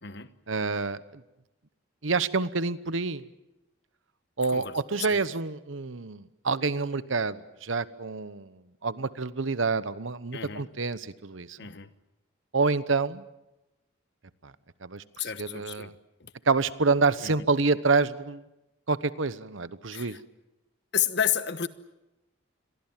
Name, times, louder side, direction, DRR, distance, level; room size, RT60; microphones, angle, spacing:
voice 1, 0.5-1.2 2.0-3.2 4.4-11.6 12.5-13.3 14.4-14.5 14.8-15.9 16.5-18.4 18.9-20.2, right 4 dB, 75° right, 1.0 m, -28 dB
voice 2, 10.3-10.7 11.6-11.9 15.2-15.9 16.2-16.3 17.2-17.3 19.9-20.2 20.9-21.7, left 9 dB, 55° left, 1.2 m, -31 dB
28.5 x 22.5 x 7.5 m
head